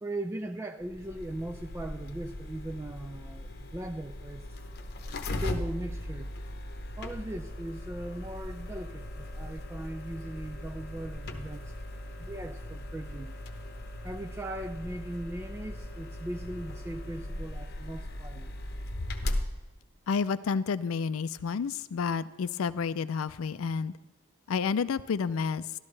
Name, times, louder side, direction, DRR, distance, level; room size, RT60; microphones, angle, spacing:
voice 1, 0.0-4.5 5.4-6.3 7.0-11.7 12.2-13.4 14.0-18.5, right 1 dB, 10° right, 6 dB, 0.3 m, -39 dB
sound 1, 0.8-19.4, left 1 dB, 50° left, 0.8 m, -38 dB
voice 2, 20.1-23.9 24.5-25.7, left 5 dB, 80° left, 15 dB, 0.4 m, -30 dB
13.0 x 12.5 x 3.2 m, 1.2 s
head